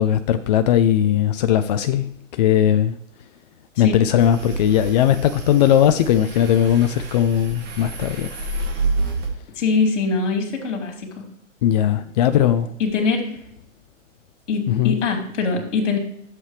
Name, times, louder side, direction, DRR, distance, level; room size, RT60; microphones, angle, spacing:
voice 1, 0.0-3.0 3.8-8.3 11.6-12.7 14.7-15.0, left 10 dB, 35° left, 0.4 m, -18 dB
sound 1, 4.2-9.3, right 3 dB, 25° right, 2.2 m, -29 dB
voice 2, 9.5-11.2 12.8-13.4 14.5-16.0, left 4 dB, 60° left, 3.0 m, -23 dB
12.0 x 7.6 x 3.2 m
hypercardioid pair, 125°, 39 cm